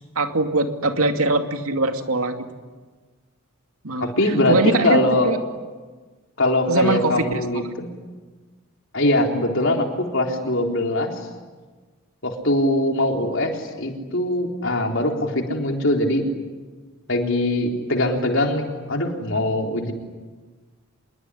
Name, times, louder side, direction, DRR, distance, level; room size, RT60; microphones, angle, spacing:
voice 1, 0.2-2.4 3.8-4.1 4.5-5.4 6.7-7.8, right 2 dB, 75° right, 5 dB, 2.6 m, -22 dB
voice 2, 4.0-5.3 6.4-7.9 8.9-11.1 12.2-16.2 17.1-19.9, left 1 dB, 55° left, 2 dB, 3.9 m, -22 dB
26.5 x 22.0 x 10.0 m, 1.4 s
head